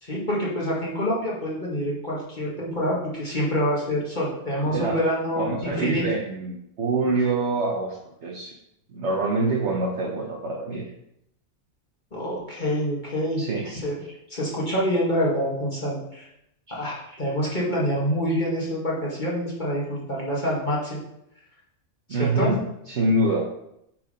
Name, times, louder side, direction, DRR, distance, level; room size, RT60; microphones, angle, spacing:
voice 1, 0.0-6.0 12.1-13.9 14.3-16.3 16.7-21.0 22.1-22.5, equal, 35° left, -6 dB, 2.3 m, -26 dB
voice 2, 4.6-5.0 5.4-8.5 8.9-10.9 13.4-13.6 22.1-22.6 22.9-23.4, right 2 dB, 55° right, -3 dB, 1.4 m, -25 dB
9.3 x 4.9 x 5.1 m, 0.80 s
omnidirectional pair, 1.4 m